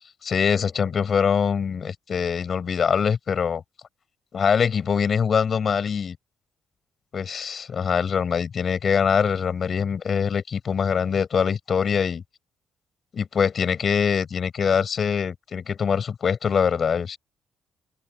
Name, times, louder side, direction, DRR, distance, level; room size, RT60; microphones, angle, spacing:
voice 1, 0.2-3.6 4.3-6.2 7.1-12.2 13.1-17.2, left 6 dB, 50° left, 6.6 m, -23 dB
open air
cardioid pair, 90°, 0 cm